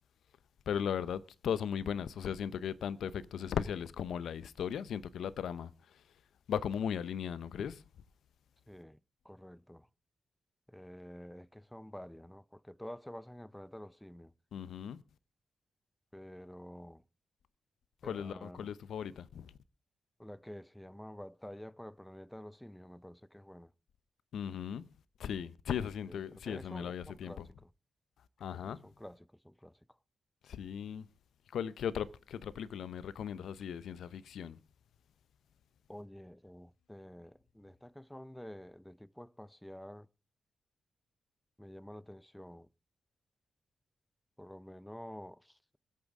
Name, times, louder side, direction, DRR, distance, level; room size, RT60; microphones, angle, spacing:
voice 1, 0.7-6.0 6.5-7.8 14.5-15.0 18.0-19.5 24.3-24.9 25.2-27.5 28.4-28.9 30.4-31.1 31.5-34.6, left 8 dB, 75° left, 0.7 m, -37 dB
voice 2, 8.7-9.0 9.2-9.9 10.7-14.3 16.1-17.0 18.0-18.7 20.2-23.7 25.7-26.2 26.4-27.7 28.6-29.2 29.4-29.8 35.9-40.1 41.6-42.7 44.4-45.8, equal, 5° left, 0.6 m, -49 dB
24.5 x 8.4 x 3.7 m
supercardioid pair, 40°, 0 cm